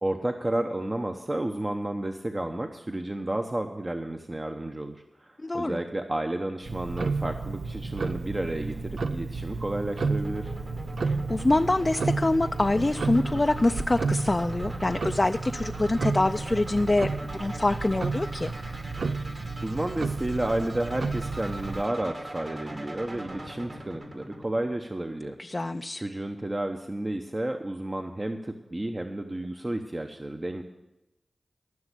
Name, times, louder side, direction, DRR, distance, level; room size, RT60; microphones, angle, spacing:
voice 1, 0.0-10.5 19.6-25.4 26.0-30.6, right 1 dB, 30° right, 5 dB, 0.8 m, -31 dB
voice 2, 5.4-5.8 11.0-18.5 25.4-26.0, left 2 dB, 35° left, 7 dB, 0.4 m, -25 dB
Tick-tock, 6.6-21.9, right 4 dB, 80° right, 0.6 m, -32 dB
sound 1, 10.2-25.2, right 1 dB, 50° right, 2.3 m, -41 dB
14.0 x 6.1 x 8.2 m, 0.95 s
cardioid pair, 45°, 0 cm